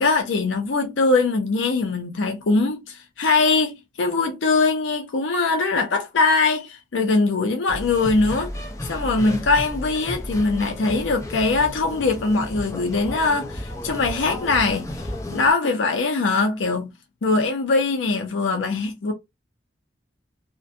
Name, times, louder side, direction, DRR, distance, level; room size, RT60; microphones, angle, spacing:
voice 1, 0.0-16.9 17.2-19.1, left 3 dB, 75° left, 0.5 m, -22 dB
sound 1, 7.7-15.5, left 1 dB, 15° left, 0.6 m, -33 dB
2.5 x 2.1 x 2.5 m
head